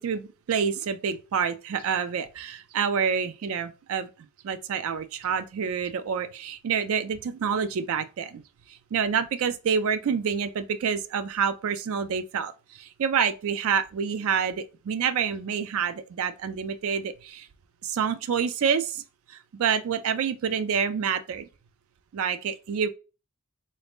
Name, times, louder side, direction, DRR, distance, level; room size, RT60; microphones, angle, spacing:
voice 1, 0.0-4.1 4.4-8.4 8.7-17.5 17.8-19.0 19.3-21.4 22.1-22.9, right 7 dB, 70° right, 0.4 m, -27 dB
3.9 x 2.7 x 3.4 m
head